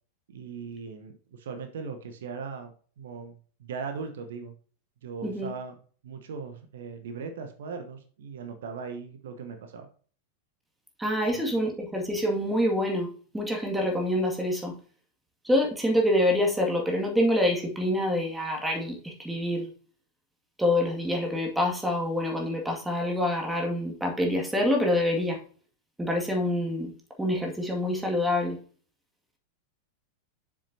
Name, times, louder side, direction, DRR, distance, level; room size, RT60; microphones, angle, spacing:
voice 1, 0.3-4.6 5.0-5.7 6.0-9.9 11.3-11.5, right 5 dB, 60° right, 7 dB, 1.0 m, -39 dB
voice 2, 11.0-14.8 15.4-19.7 20.6-25.4 26.0-26.9 27.2-28.6, left 1 dB, 5° right, 0 dB, 2.1 m, -26 dB
7.4 x 7.2 x 2.8 m, 0.41 s
figure-of-eight pair, 90°, 0 cm